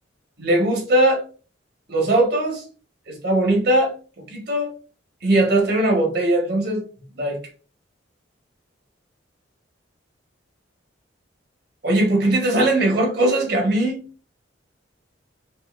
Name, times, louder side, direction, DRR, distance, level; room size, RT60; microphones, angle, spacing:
voice 1, 0.4-1.2 1.9-2.6 3.1-4.7 5.2-6.8 7.2-7.4 11.8-14.0, right 1 dB, 55° right, 1.5 m, -20 dB
5.8 x 2.8 x 2.6 m
head